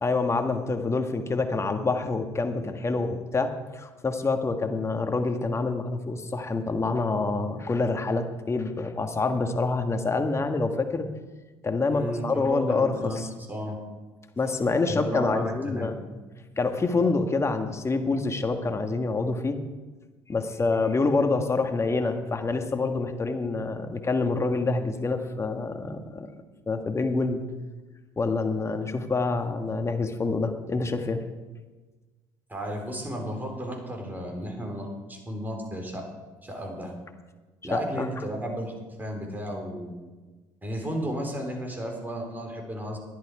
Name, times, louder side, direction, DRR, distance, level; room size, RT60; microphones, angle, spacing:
voice 1, 0.0-11.1 11.6-13.3 14.4-15.9 16.6-19.6 20.3-26.3 26.7-27.4 28.2-31.2 37.7-38.1, left 3 dB, 25° left, 6 dB, 1.5 m, -27 dB
voice 2, 11.9-13.2 13.5-13.8 14.9-16.0 32.5-36.0 36.4-37.0 37.6-38.7 39.0-39.9 40.6-43.0, equal, 15° right, 2 dB, 3.9 m, -33 dB
12.5 x 10.5 x 4.8 m, 1.3 s
supercardioid pair, 75°, 10 cm